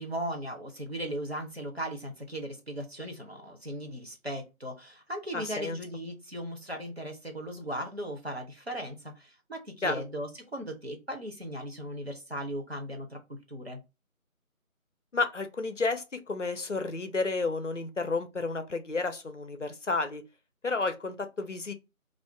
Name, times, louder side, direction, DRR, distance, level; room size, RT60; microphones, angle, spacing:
voice 1, 0.0-13.8, equal, 45° right, 0.6 m, -37 dB
voice 2, 5.3-5.8 9.8-10.0 15.1-20.2 20.6-21.7, left 3 dB, 60° left, 0.5 m, -31 dB
2.4 x 2.2 x 3.3 m
figure-of-eight pair, 170°, 43 cm